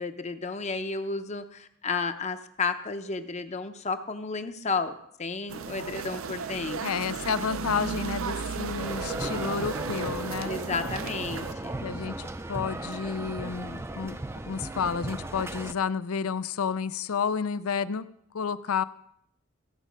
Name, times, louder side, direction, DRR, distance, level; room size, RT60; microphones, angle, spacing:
voice 1, 0.0-6.8 10.4-11.7, left 4 dB, 30° left, 9 dB, 0.7 m, -32 dB
sound 1, 5.5-11.5, right 5 dB, 70° right, 0.5 m, -35 dB
voice 2, 6.8-10.5 11.8-18.0 18.3-18.8, left 6 dB, 85° left, 15 dB, 0.5 m, -31 dB
sound 2, 8.8-15.7, right 2 dB, 10° right, 0.4 m, -36 dB
15.5 x 7.4 x 5.1 m, 0.74 s
head